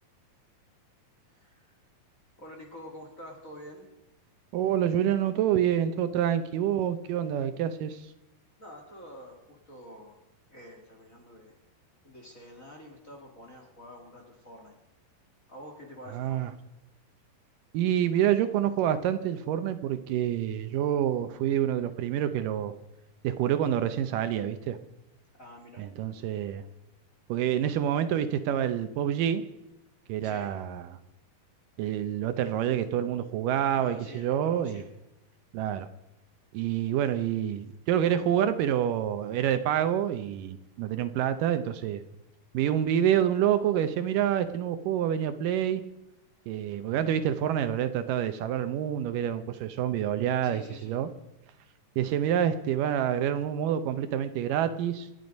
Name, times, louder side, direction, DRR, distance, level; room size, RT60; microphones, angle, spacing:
voice 1, 1.3-1.7 2.4-3.9 8.6-10.2 10.5-11.6 12.0-14.7 15.5-16.5 25.3-25.8 30.2-30.5 33.8-34.9 50.4-51.0, equal, 25° left, 0 dB, 2.1 m, -47 dB
voice 2, 4.5-8.1 16.1-16.5 17.7-22.7 23.2-24.8 25.8-26.6 27.3-29.4 30.1-31.0 31.8-34.8 35.5-35.9 36.5-42.0 42.5-45.8 46.5-51.1 52.0-55.1, right 10 dB, 75° right, 10 dB, 2.3 m, -27 dB
27.5 x 9.5 x 5.3 m, 0.94 s
omnidirectional pair, 4.1 m